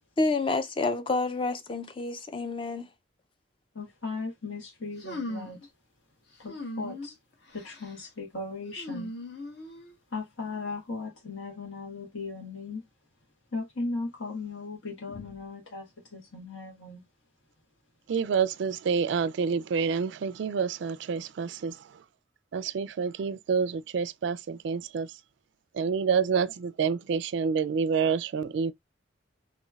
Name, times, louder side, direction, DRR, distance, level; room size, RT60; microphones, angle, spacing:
voice 1, 0.2-2.9, left 3 dB, 25° left, 0.4 m, -28 dB
voice 2, 3.7-5.6 6.4-7.1 7.5-9.1 10.1-12.8 13.5-17.0, left 3 dB, 80° left, 1.5 m, -37 dB
sound 1, 5.0-5.7 6.5-7.1 7.5-7.9 8.8-9.9, left 2 dB, 60° left, 1.0 m, -38 dB
voice 3, 18.1-22.0 22.5-25.1 25.7-28.7, right 6 dB, 65° right, 0.3 m, -28 dB
3.1 x 2.8 x 2.3 m
head